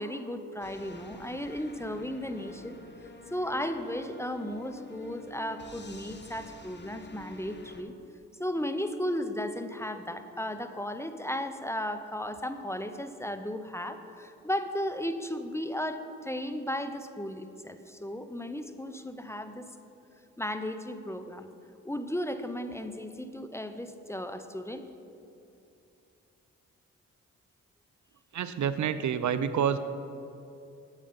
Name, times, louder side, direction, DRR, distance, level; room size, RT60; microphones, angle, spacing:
voice 1, 0.0-2.8 3.3-7.9 8.4-19.7 20.4-21.5 21.8-24.9, left 1 dB, 10° left, 9 dB, 0.7 m, -35 dB
sound 1, 0.6-7.8, left 2 dB, 35° left, 1.1 m, -49 dB
voice 2, 28.3-29.8, right 8 dB, 60° right, 12 dB, 0.6 m, -28 dB
8.5 x 8.2 x 5.5 m, 2.7 s
supercardioid pair, 40°, 33 cm